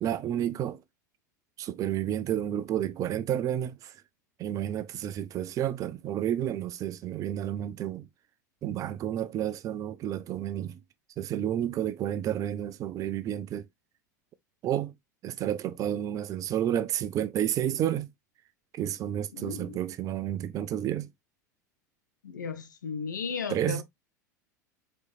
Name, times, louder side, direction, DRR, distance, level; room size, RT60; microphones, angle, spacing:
voice 1, 0.0-0.8 1.6-4.0 4.4-8.1 8.6-10.8 11.2-13.7 14.6-14.9 15.2-18.1 18.7-21.1 23.5-23.8, right 11 dB, 35° right, 0.6 m, -31 dB
voice 2, 19.3-19.8 22.2-23.8, left 5 dB, 75° left, 0.8 m, -35 dB
4.6 x 4.4 x 2.3 m
figure-of-eight pair, 80°, 10 cm